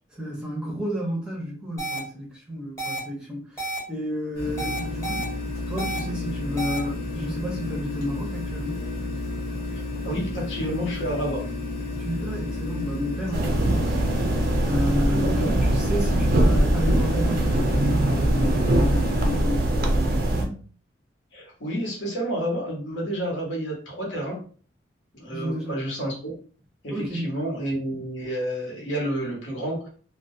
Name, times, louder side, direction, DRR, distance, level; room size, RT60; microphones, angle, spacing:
voice 1, 0.1-5.3 5.7-8.9 12.0-20.6 25.3-25.7 26.9-27.2, equal, 5° right, -4 dB, 0.6 m, -31 dB
sound 1, 1.8-2.0 2.8-3.0 3.6-3.8 4.6-5.2 5.8-6.0 6.6-6.8, right 2 dB, 15° left, 0.9 m, -30 dB
sound 2, 4.3-19.4, left 2 dB, 50° left, 0.8 m, -32 dB
voice 2, 10.0-11.5 15.2-15.6 21.3-24.4 25.1-26.4 26.8-29.9, right 1 dB, 75° left, -2 dB, 1.0 m, -30 dB
sound 3, 13.3-20.4, right 1 dB, 50° right, 0.4 m, -22 dB
2.3 x 2.1 x 2.6 m, 0.41 s
head